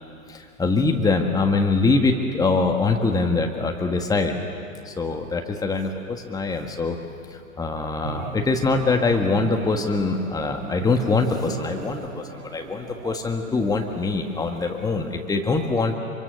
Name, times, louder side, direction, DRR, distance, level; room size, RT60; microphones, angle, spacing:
voice 1, 0.3-4.4 4.9-7.0 7.6-15.9, left 3 dB, 10° left, 4 dB, 1.8 m, -23 dB
sound 1, 8.0-15.2, right 4 dB, 70° right, 2.5 m, -38 dB
26.5 x 25.0 x 6.7 m, 2.5 s
figure-of-eight pair, 105°, 44 cm